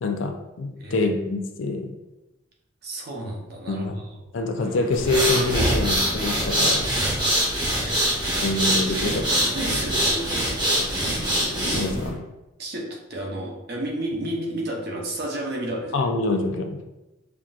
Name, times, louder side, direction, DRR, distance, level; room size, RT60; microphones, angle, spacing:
voice 1, 0.0-1.9 3.7-4.0 4.3-6.8 8.4-9.2 9.7-9.8 11.7-12.2 15.9-16.8, left 2 dB, 65° left, 5 dB, 0.4 m, -25 dB
voice 2, 2.8-4.2 7.7-8.3 8.7-10.6 12.6-16.1, right 1 dB, 50° right, -1 dB, 0.8 m, -32 dB
sound 1, 4.6-12.2, equal, 85° right, 1.3 m, -37 dB
sound 2, 4.9-12.1, right 1 dB, 20° right, 0.9 m, -24 dB
5.7 x 2.5 x 2.4 m, 0.98 s
head